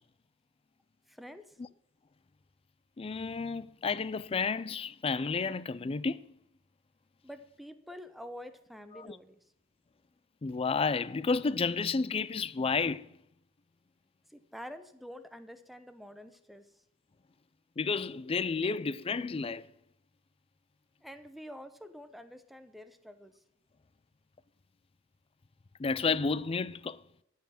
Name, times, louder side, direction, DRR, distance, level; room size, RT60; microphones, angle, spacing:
voice 1, 1.1-1.6 7.2-9.4 14.3-16.7 21.0-23.4, equal, ahead, 0.8 m, -47 dB
voice 2, 3.0-6.2 9.0-9.2 10.4-13.1 17.8-19.7 25.8-27.0, left 4 dB, 30° left, 0.4 m, -31 dB
13.5 x 5.6 x 7.5 m
head